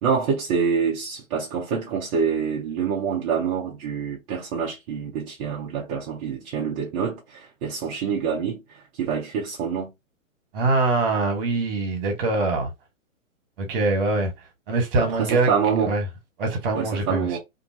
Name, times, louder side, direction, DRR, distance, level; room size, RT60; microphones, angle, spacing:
voice 1, 0.0-9.9 15.0-16.0 16.7-17.4, right 6 dB, 25° right, 0.7 m, -26 dB
voice 2, 10.5-12.7 13.6-14.3 14.7-15.5 15.8-16.0 16.4-17.4, right 3 dB, 40° right, 1.5 m, -23 dB
2.7 x 2.6 x 2.7 m
hypercardioid pair, 130°, 40 cm